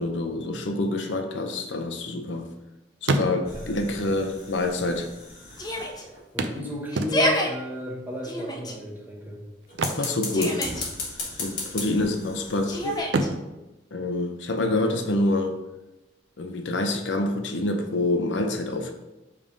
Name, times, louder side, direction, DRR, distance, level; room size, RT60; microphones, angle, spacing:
voice 1, 0.0-2.5 3.0-5.1 10.0-10.6 11.4-13.1 13.9-15.6 16.4-18.9, left 2 dB, 85° left, 5 dB, 0.7 m, -27 dB
sound 1, 1.7-2.6 2.9-3.8 4.7-4.8 5.0-5.1 6.4-7.6 9.6-10.9 11.2-11.5 12.0-12.6 13.0-14.8 16.8-16.9 17.3-17.4, right 2 dB, 80° right, 0.5 m, -30 dB
sound 2, 3.4-6.3 9.7-13.0, left 3 dB, 55° left, 1.5 m, -37 dB
Yell, 5.6-6.0 6.9-7.5 8.2-8.7 9.9-10.9 12.7-13.3, equal, 20° left, 0.6 m, -27 dB
voice 2, 6.3-9.4, left 1 dB, 10° right, -2 dB, 1.0 m, -34 dB
5.3 x 3.4 x 5.1 m, 0.99 s
head